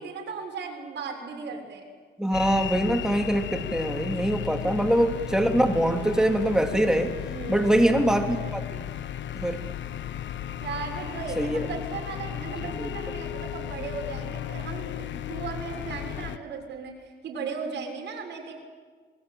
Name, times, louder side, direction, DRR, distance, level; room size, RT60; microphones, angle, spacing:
voice 1, 0.0-1.9 4.5-4.9 7.2-8.0 10.6-18.5, right 5 dB, 65° right, 1 dB, 7.0 m, -36 dB
voice 2, 2.2-7.1 7.5-8.8 9.3-9.6 11.4-11.7 12.8-12.9, right 1 dB, 5° right, 4 dB, 3.1 m, -23 dB
sound 1, 2.3-16.4, left 11 dB, 65° left, 1.2 m, -35 dB
26.5 x 21.5 x 9.0 m, 1.5 s
cardioid pair, 90°, 20 cm